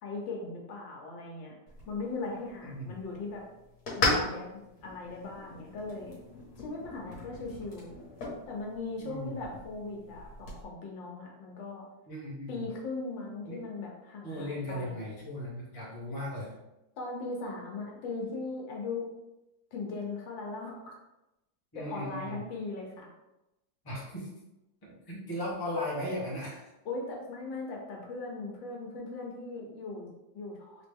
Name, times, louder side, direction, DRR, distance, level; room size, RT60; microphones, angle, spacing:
voice 1, 0.0-1.5 1.9-3.4 3.9-6.2 6.6-7.9 8.5-11.9 12.5-15.0 17.0-19.1 19.7-20.9 21.7-23.1 26.8-30.9, left 3 dB, 75° left, 0 dB, 1.6 m, -39 dB
sound 1, 1.7-10.6, left 2 dB, 55° left, 1.7 m, -37 dB
voice 2, 2.6-3.0 9.0-9.4 12.1-12.7 13.5-13.6 14.2-16.5 21.7-22.4 23.8-24.3 24.8-26.7, left 1 dB, 15° left, -6 dB, 0.9 m, -37 dB
3.9 x 3.0 x 3.4 m, 0.94 s
omnidirectional pair, 2.1 m